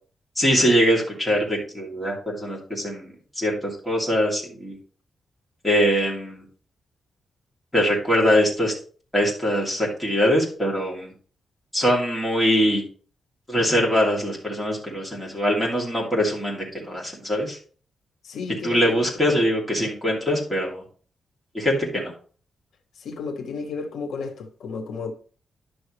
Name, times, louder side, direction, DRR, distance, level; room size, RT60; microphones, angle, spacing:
voice 1, 0.4-4.7 5.6-6.4 7.7-8.7 9.1-11.1 11.7-12.8 13.5-17.6 18.6-20.8 21.5-22.1, equal, 5° left, 2.6 m, -22 dB
voice 2, 18.2-19.4 23.0-25.1, left 5 dB, 85° left, 1.0 m, -33 dB
10.5 x 6.3 x 3.2 m
wide cardioid pair, 170°, 0 cm